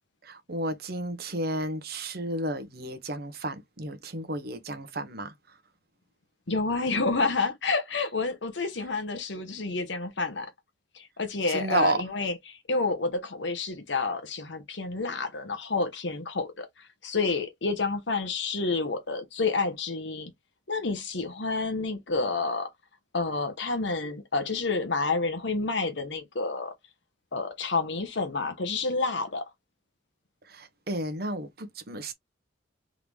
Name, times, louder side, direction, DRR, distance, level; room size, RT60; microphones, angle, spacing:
voice 1, 0.2-5.3 11.5-12.0 30.5-32.1, right 2 dB, 55° right, 1.0 m, -32 dB
voice 2, 6.5-10.5 10.9-20.3 20.7-22.7 23.1-26.7 27.3-29.5, left 3 dB, 70° left, 1.2 m, -29 dB
3.9 x 3.4 x 3.2 m
head